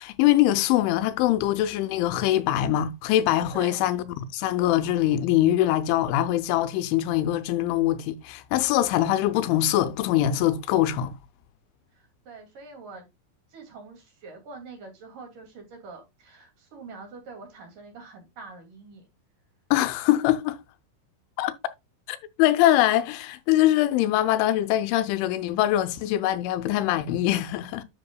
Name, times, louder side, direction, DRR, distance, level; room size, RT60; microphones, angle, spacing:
voice 1, 0.0-11.2 19.7-20.6 21.4-21.5 22.1-27.8, left 13 dB, 80° left, 3.1 m, -23 dB
voice 2, 3.5-3.9 11.9-13.1 13.5-19.0, right 4 dB, 50° right, 3.5 m, -44 dB
10.5 x 6.8 x 2.2 m
omnidirectional pair, 5.5 m